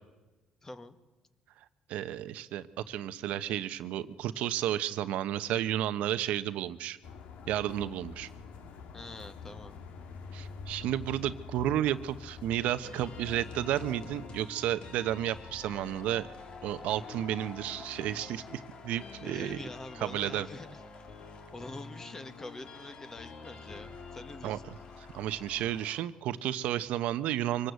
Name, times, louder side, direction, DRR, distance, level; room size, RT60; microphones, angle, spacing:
voice 1, 0.6-1.0 8.9-9.8 19.2-20.8 21.5-24.7, left 2 dB, 20° left, 10 dB, 1.6 m, -45 dB
voice 2, 1.9-7.0 7.5-8.3 10.3-16.3 16.6-19.6 20.0-20.5 24.4-24.6 25.1-27.7, right 12 dB, 80° right, 13 dB, 1.0 m, -32 dB
sound 1, 7.0-14.3, left 5 dB, 80° left, 1.9 m, -46 dB
sound 2, 12.8-26.0, left 4 dB, 50° left, 2.2 m, -47 dB
24.5 x 19.0 x 8.2 m, 1.2 s
cardioid pair, 105°, 2 cm